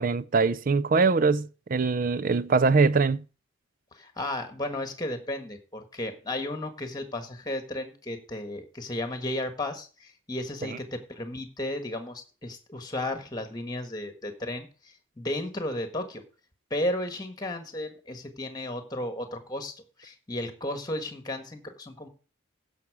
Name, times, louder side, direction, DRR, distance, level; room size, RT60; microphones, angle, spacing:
voice 1, 0.0-3.2 10.7-10.8, right 4 dB, 40° right, 0.4 m, -23 dB
voice 2, 3.9-16.2 16.7-22.1, left 1 dB, 20° left, 1.5 m, -34 dB
15.5 x 5.9 x 4.8 m
head